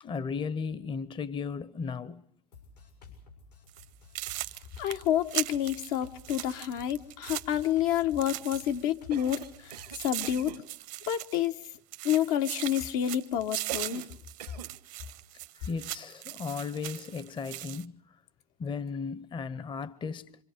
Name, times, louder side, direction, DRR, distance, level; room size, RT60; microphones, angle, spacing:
voice 1, 0.0-2.2 15.6-17.9 18.6-20.3, left 5 dB, 25° left, 0.9 m, -35 dB
Drum kit, 2.5-10.5, left 4 dB, 90° left, 6.9 m, -53 dB
sound 1, 3.7-3.9 4.2-8.9 9.2-11.7 11.9-17.9, right 17 dB, 55° right, 1.0 m, -39 dB
voice 2, 4.8-9.7 10.0-10.6 11.1-11.5 12.0-14.1, left 11 dB, 60° left, 1.1 m, -29 dB
Cough, 9.1-10.7 13.7-14.1 14.4-14.8, right 11 dB, 85° right, 1.6 m, -43 dB
26.5 x 26.5 x 5.1 m
hypercardioid pair, 85°, 20 cm